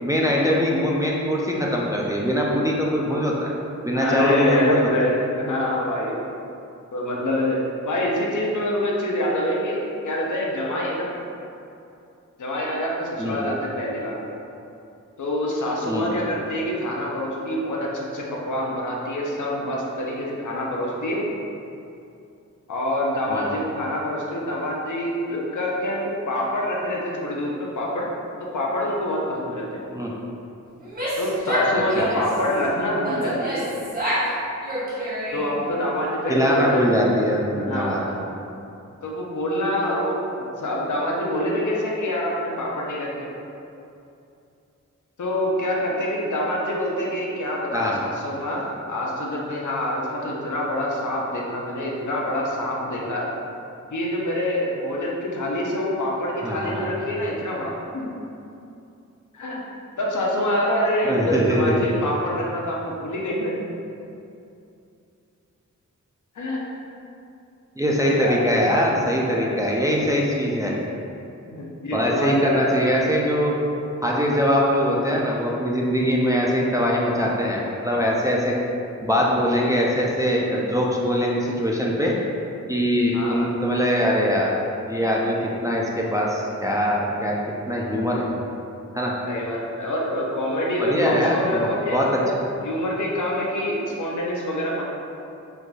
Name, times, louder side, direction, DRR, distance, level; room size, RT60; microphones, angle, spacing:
voice 1, 0.0-3.5 3.8-4.9 13.2-13.4 15.8-16.1 23.3-23.5 29.9-30.1 31.7-32.0 36.3-38.0 47.7-48.0 56.4-56.9 61.0-61.8 67.8-70.7 71.9-73.5 74.0-78.5 79.0-82.1 82.7-84.6 84.8-87.4 87.7-88.2 88.9-89.1 90.8-92.2, equal, 10° right, -4 dB, 0.3 m, -22 dB
voice 2, 3.9-6.2 6.9-7.6 7.8-9.8 10.0-11.1 12.4-14.1 15.2-21.2 22.7-28.1 28.4-29.8 31.2-33.8 35.3-36.8 37.6-38.2 39.0-40.2 40.6-43.3 45.2-53.3 53.9-58.1 59.3-59.6 60.0-63.6 66.4-66.6 68.0-68.4 69.4-69.5 71.4-72.9 83.1-83.5 89.2-92.3 92.6-94.8, left 1 dB, 75° left, -3 dB, 0.6 m, -26 dB
Female speech woman speaking / Yell, 30.8-32.4 33.0-34.3 34.6-35.6, equal, 30° right, 0.8 m, -27 dB
4.5 x 2.5 x 2.3 m, 2.6 s
wide cardioid pair, 100°, 31 cm